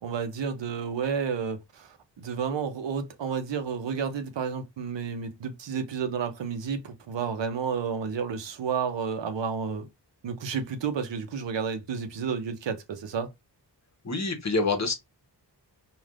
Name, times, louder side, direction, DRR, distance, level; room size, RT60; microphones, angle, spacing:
voice 1, 0.0-9.9 10.2-13.3, right 6 dB, 85° right, 0.7 m, -31 dB
voice 2, 14.0-14.9, left 3 dB, 40° left, 0.9 m, -26 dB
3.3 x 2.5 x 2.4 m
wide cardioid pair, 130°, 43 cm